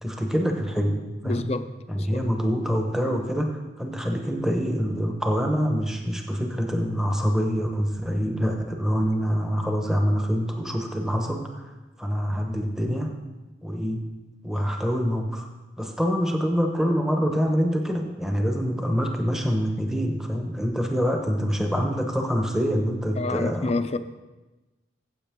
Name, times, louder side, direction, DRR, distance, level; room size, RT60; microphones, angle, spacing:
voice 1, 0.0-1.5 1.9-11.7 12.0-13.2 13.6-14.1 14.4-15.5 15.8-23.7, equal, 5° right, 3 dB, 1.0 m, -25 dB
voice 2, 1.2-1.7 1.9-2.2 23.2-24.0, left 3 dB, 35° left, 11 dB, 0.5 m, -28 dB
15.0 x 8.1 x 3.7 m, 1.1 s
head